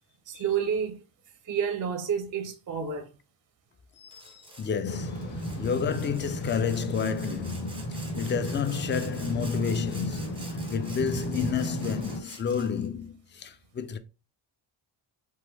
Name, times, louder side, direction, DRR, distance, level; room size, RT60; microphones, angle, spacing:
voice 1, 0.3-1.0 1.4-3.1, right 7 dB, 40° right, 0.5 m, -29 dB
voice 2, 4.0-14.0, left 7 dB, 25° left, 0.3 m, -31 dB
Sawing, 4.1-4.7 5.2-12.9, right 2 dB, 10° right, 0.9 m, -48 dB
sound 1, 4.9-12.2, right 1 dB, 75° left, 1.3 m, -34 dB
2.9 x 2.2 x 3.3 m
cardioid pair, 75°, 48 cm